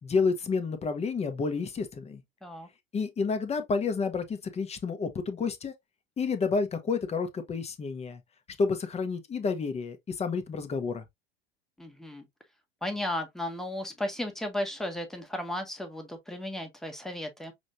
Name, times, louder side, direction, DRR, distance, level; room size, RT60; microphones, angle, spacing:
voice 1, 0.0-2.2 2.9-5.7 6.2-8.2 8.6-11.0, left 4 dB, 20° left, 1.0 m, -30 dB
voice 2, 11.8-12.3 12.8-17.5, left 1 dB, ahead, 1.3 m, -35 dB
6.2 x 3.2 x 2.6 m
figure-of-eight pair, 85°, 31 cm